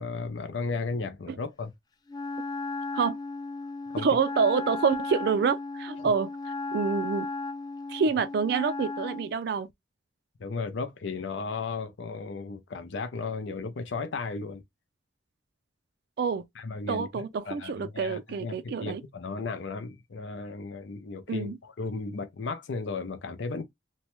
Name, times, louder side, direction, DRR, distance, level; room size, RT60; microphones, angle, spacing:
voice 1, 0.0-1.7 3.9-4.1 6.0-6.1 10.4-14.6 16.6-23.6, left 4 dB, 85° left, 0.6 m, -35 dB
Wind instrument woodwind instrument, 2.1-9.3, left 3 dB, 20° left, 0.5 m, -35 dB
voice 2, 4.0-6.3 6.7-7.3 7.9-9.7 16.2-16.5 16.9-19.0 21.3-21.6, right 5 dB, 60° right, 0.3 m, -27 dB
3.0 x 2.2 x 2.9 m
head